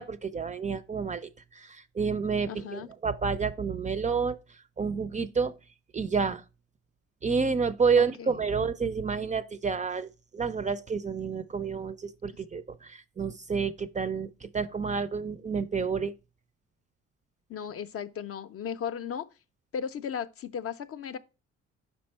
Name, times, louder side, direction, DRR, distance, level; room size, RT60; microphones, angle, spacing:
voice 1, 0.0-4.4 4.8-5.5 5.9-6.4 7.2-16.1, right 5 dB, 25° right, 0.4 m, -29 dB
voice 2, 2.5-2.9 8.0-8.4 17.5-19.3 19.7-21.2, left 7 dB, 50° left, 0.5 m, -36 dB
5.3 x 4.4 x 4.3 m
cardioid pair, 90°, 30 cm